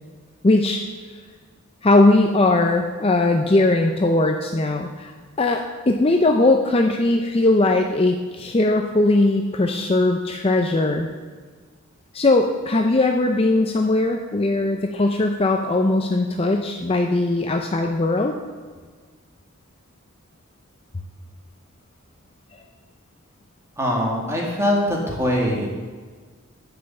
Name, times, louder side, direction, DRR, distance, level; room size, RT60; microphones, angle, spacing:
voice 1, 0.4-0.8 1.8-5.1 5.4-11.1 12.1-18.4, left 2 dB, 25° left, 3 dB, 0.5 m, -19 dB
voice 2, 23.8-25.7, equal, 10° right, -2 dB, 1.9 m, -22 dB
10.5 x 5.4 x 7.2 m, 1.5 s
head